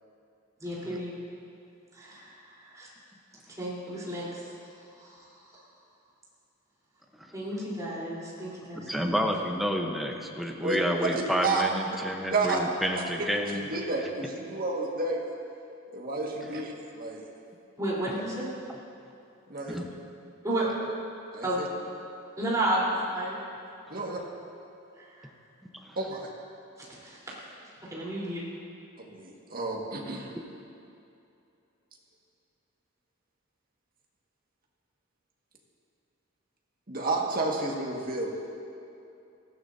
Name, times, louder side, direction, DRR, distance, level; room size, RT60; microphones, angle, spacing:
voice 1, 0.6-1.1 1.9-2.9 3.6-4.4 5.0-5.6 7.3-9.2 17.8-18.5 20.4-20.7 21.4-21.6 22.4-23.4 24.0-24.1 25.0-25.3 27.0-27.2 27.8-28.5, right 1 dB, 15° right, -7 dB, 3.9 m, -32 dB
voice 2, 8.9-13.7 18.7-18.8 19.7-19.9 25.8-26.0, equal, ahead, 1 dB, 1.0 m, -30 dB
voice 3, 10.6-11.6 12.3-12.6 12.9-13.0 13.5-15.2 15.9-17.2 19.5-19.8 21.3-21.7 23.9-24.2 26.0-26.3 29.0-30.3 36.9-38.3, right 3 dB, 45° right, -1 dB, 1.8 m, -31 dB
19.0 x 15.0 x 2.8 m, 2.7 s
head